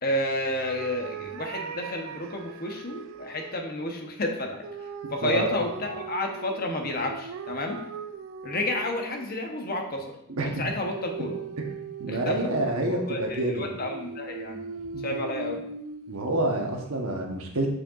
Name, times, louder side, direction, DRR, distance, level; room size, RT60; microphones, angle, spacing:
voice 1, 0.0-7.8 8.4-10.1 10.4-11.4 12.1-12.5 12.9-14.6 15.0-15.6, left 1 dB, 45° left, 3 dB, 0.9 m, -31 dB
sound 1, 0.6-3.6 4.6-9.4 10.8-16.9, right 5 dB, 65° right, 0.4 m, -39 dB
voice 2, 5.2-5.5 10.3-10.5 12.0-13.7 14.9-15.0 16.1-17.7, right 2 dB, 85° right, 2 dB, 1.1 m, -27 dB
6.5 x 6.3 x 2.5 m, 0.76 s
head